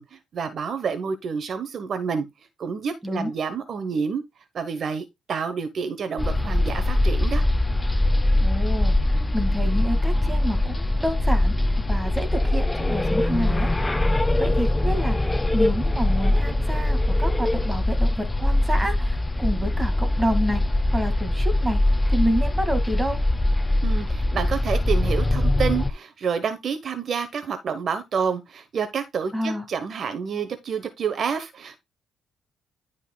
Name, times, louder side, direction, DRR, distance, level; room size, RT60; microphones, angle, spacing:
voice 1, 0.0-2.3 2.6-4.2 4.5-7.4 23.8-31.8, right 6 dB, 55° right, 1.0 m, -28 dB
sound 1, 6.2-25.9, left 1 dB, 15° left, 0.5 m, -22 dB
voice 2, 8.4-13.7 14.1-20.6 20.9-21.8 22.1-23.2 29.3-29.6, equal, 15° right, 2.0 m, -29 dB
11.0 x 5.5 x 2.3 m
cardioid pair, 90°, 0 cm